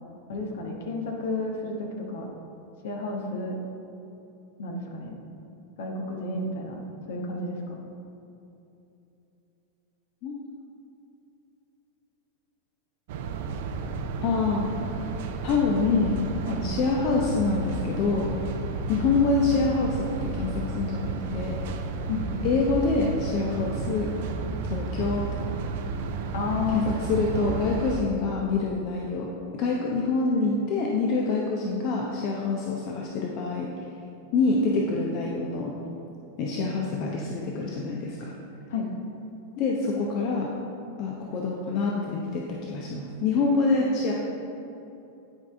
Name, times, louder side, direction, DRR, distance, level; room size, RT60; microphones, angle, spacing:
voice 1, 0.3-2.3 2.8-3.6 4.6-5.2 5.8-6.8 7.1-7.8 16.5-16.6 22.1-22.4 26.3-26.9 38.7-38.9, left 3 dB, 65° left, 0 dB, 1.2 m, -31 dB
sound 1, 13.1-28.0, right 4 dB, 60° right, 0.5 m, -32 dB
voice 2, 14.2-14.7 15.4-16.2 16.6-18.3 18.9-21.6 22.4-24.1 24.7-25.3 26.7-33.7 34.3-35.8 36.4-38.3 39.6-40.5 41.0-44.1, left 4 dB, 45° left, -1 dB, 0.7 m, -26 dB
10.0 x 5.0 x 3.4 m, 2.9 s
figure-of-eight pair, 90°, 0 cm